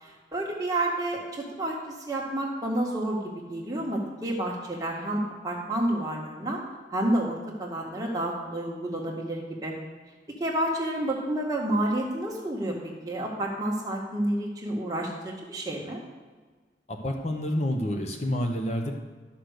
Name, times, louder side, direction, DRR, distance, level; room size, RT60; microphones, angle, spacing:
voice 1, 0.0-3.2 3.5-6.6 6.9-9.7 10.4-16.0, right 1 dB, 20° right, -2 dB, 1.7 m, -30 dB
voice 2, 16.9-18.9, left 1 dB, 40° left, 3 dB, 0.9 m, -28 dB
11.5 x 6.1 x 6.6 m, 1.4 s
head